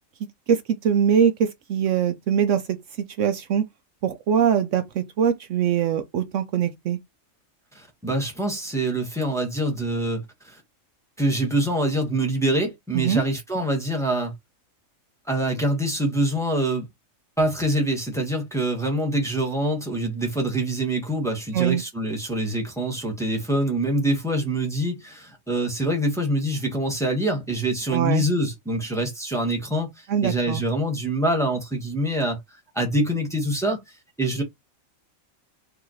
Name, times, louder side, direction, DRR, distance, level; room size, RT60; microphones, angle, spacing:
voice 1, 0.5-2.8 3.2-3.6 4.0-7.0 12.9-13.2 21.5-21.8 27.9-28.2 30.1-30.6, right 8 dB, 70° right, 0.9 m, -22 dB
voice 2, 7.7-10.6 11.2-14.3 15.3-16.8 17.4-32.4 32.7-33.8 34.2-34.4, right 1 dB, ahead, 1.3 m, -25 dB
5.0 x 2.8 x 3.1 m
omnidirectional pair, 1.4 m